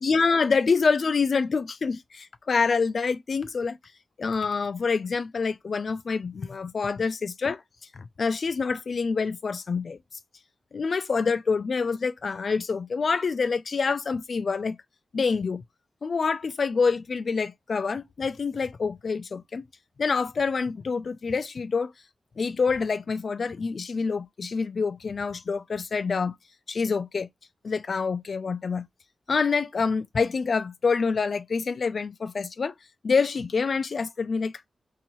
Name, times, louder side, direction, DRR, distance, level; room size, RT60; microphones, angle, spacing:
voice 1, 0.0-3.8 4.2-7.6 7.9-10.0 10.7-14.8 15.1-15.6 16.0-19.6 20.0-21.9 22.4-26.3 26.7-27.3 27.6-28.9 29.3-32.7 33.0-34.5, left 5 dB, 55° left, 0.4 m, -26 dB
3.0 x 2.7 x 4.1 m
wide cardioid pair, 100°, 0 cm